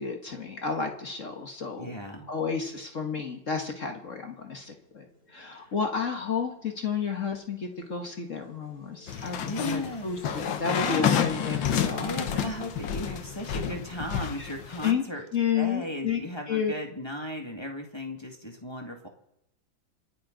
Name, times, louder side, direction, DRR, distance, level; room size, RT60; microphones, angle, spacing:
voice 1, 0.0-1.9 2.3-12.2 14.4-14.5 14.8-15.0 15.3-16.2 16.5-16.7, left 6 dB, 40° left, 4 dB, 1.6 m, -31 dB
sound 1, 1.5-14.0, equal, 35° right, 4.2 m, -48 dB
voice 2, 1.8-2.3 5.5-5.7 9.1-10.1 10.7-11.1 12.0-15.2 15.5-19.1, left 1 dB, 15° left, 1 dB, 1.8 m, -36 dB
sound 2, 9.1-14.9, left 8 dB, 70° left, 1.8 m, -30 dB
28.0 x 9.4 x 4.0 m, 0.81 s
omnidirectional pair, 2.2 m